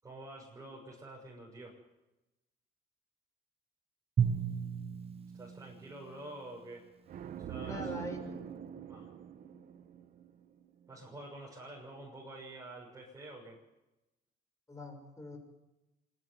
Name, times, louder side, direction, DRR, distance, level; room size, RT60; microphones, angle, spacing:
voice 1, 0.0-1.8 5.3-6.8 7.4-7.9 8.9-9.1 10.9-13.6, right 1 dB, 20° right, -4 dB, 6.6 m, -48 dB
Drum, 4.2-6.6, right 7 dB, 35° right, 0.8 m, -34 dB
sound 1, 7.1-10.7, right 9 dB, 55° right, 1.5 m, -44 dB
voice 2, 7.6-8.3 14.7-15.4, left 1 dB, 20° left, 4 dB, 6.5 m, -43 dB
25.5 x 11.5 x 9.8 m, 1.0 s
cardioid pair, 110°, 17 cm